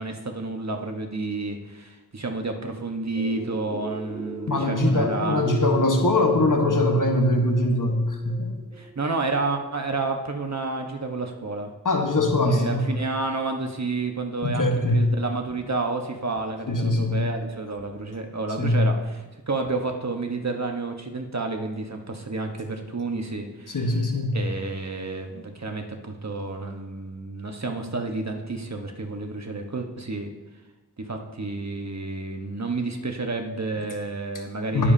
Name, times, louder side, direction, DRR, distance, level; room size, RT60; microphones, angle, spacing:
voice 1, 0.0-5.4 8.7-11.7 12.5-23.8 24.3-30.3 31.0-34.9, right 3 dB, 45° right, 4 dB, 1.3 m, -30 dB
sound 1, 3.1-9.7, right 1 dB, 20° right, 2.3 m, -37 dB
voice 2, 4.5-8.5 11.8-12.9 14.4-15.1 16.7-17.2 18.6-18.8 23.7-24.4 34.7-34.9, left 1 dB, 50° left, 4 dB, 1.3 m, -22 dB
19.0 x 7.2 x 2.8 m, 1.1 s
wide cardioid pair, 50°, 39 cm